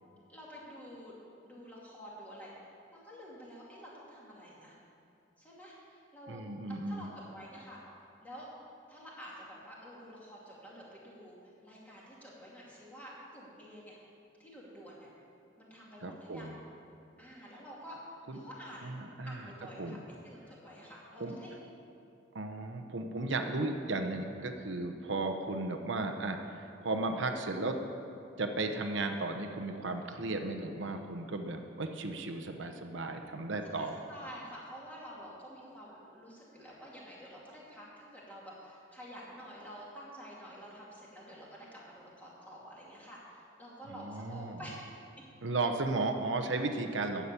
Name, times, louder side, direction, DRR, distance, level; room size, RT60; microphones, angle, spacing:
voice 1, 0.3-1.2 1.4-2.5 2.9-4.8 5.4-6.4 6.7-7.8 8.2-8.5 8.9-11.4 11.6-14.0 14.4-15.1 15.6-16.5 17.2-18.0 18.3-18.9 19.3-20.0 20.2-21.5 33.7-44.8, equal, 10° left, -6 dB, 2.5 m, -49 dB
voice 2, 6.3-7.1 16.0-16.6 18.3-18.4 18.8-19.5 19.8-20.0 21.2-21.4 22.3-27.8 28.4-34.0 43.9-44.6 45.4-47.2, right 2 dB, 80° right, 5 dB, 0.9 m, -35 dB
11.5 x 7.2 x 8.3 m, 2.6 s
head